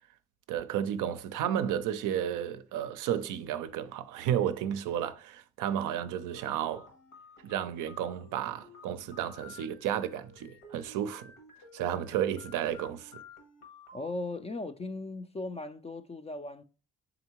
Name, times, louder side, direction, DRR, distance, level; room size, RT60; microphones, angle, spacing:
voice 1, 0.5-6.9 7.4-11.3 11.7-13.2, right 10 dB, 65° right, 0.5 m, -32 dB
sound 1, 6.1-14.1, left 1 dB, 75° left, 1.4 m, -52 dB
voice 2, 13.9-16.6, left 2 dB, 20° left, 0.4 m, -37 dB
3.8 x 3.5 x 2.9 m
supercardioid pair, 60°, 33 cm